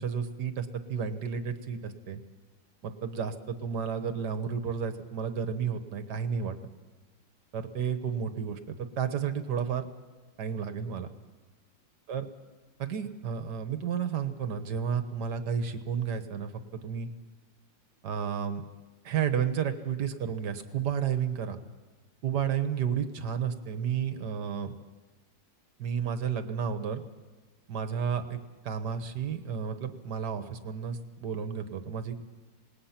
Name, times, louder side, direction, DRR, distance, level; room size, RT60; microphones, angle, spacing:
voice 1, 0.0-2.2 2.8-6.6 7.5-9.8 10.4-11.1 12.1-12.3 12.8-17.1 18.0-18.6 19.0-21.6 22.2-24.8 25.8-27.0 27.7-28.4 28.6-32.2, right 7 dB, 65° right, 9 dB, 1.7 m, -32 dB
27.0 x 19.5 x 5.9 m, 1.3 s
omnidirectional pair, 2.0 m